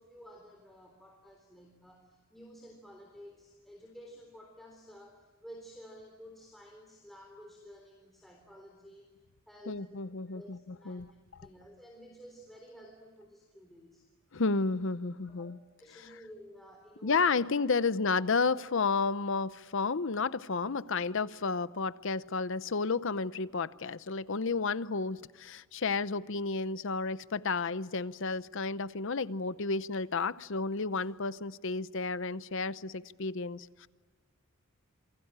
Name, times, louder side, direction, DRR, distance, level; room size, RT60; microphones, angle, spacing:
voice 1, 0.0-9.1 9.5-10.0 10.3-11.0 11.4-14.1 15.2-15.5 15.8-17.2 20.9-21.1, equal, ahead, 1 dB, 3.7 m, -52 dB
voice 2, 9.7-11.1 14.3-15.6 17.0-33.9, left 4 dB, 60° left, 15 dB, 0.7 m, -32 dB
28.0 x 23.5 x 8.9 m, 1.4 s
head